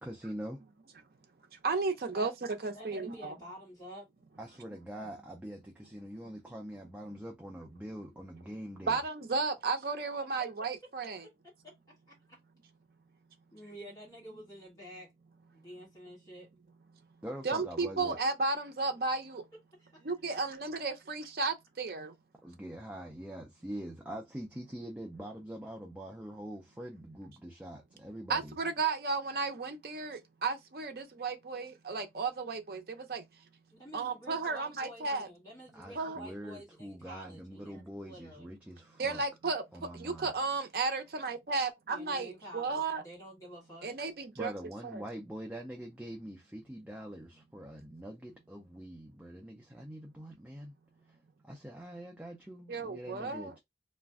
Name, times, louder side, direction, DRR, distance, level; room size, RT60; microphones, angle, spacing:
voice 1, 0.0-0.6 4.4-9.0 17.2-18.2 22.4-28.5 35.7-39.2 39.7-40.3 44.4-50.7 51.1-51.2 51.4-53.6, equal, 10° right, 0.4 m, -44 dB
voice 2, 1.6-2.3 2.6-3.3 8.9-11.2 17.4-19.4 20.0-22.1 28.3-33.2 33.9-35.3 35.9-36.2 39.0-39.6 40.0-43.0 43.8-44.5 44.8-45.0 52.7-53.5, right 4 dB, 55° right, 0.5 m, -33 dB
voice 3, 2.7-4.1 11.6-12.4 13.5-15.1 15.5-16.5 19.8-20.6 33.7-38.5 41.9-43.9, right 1 dB, 20° left, 1.2 m, -50 dB
2.4 x 2.1 x 3.4 m
head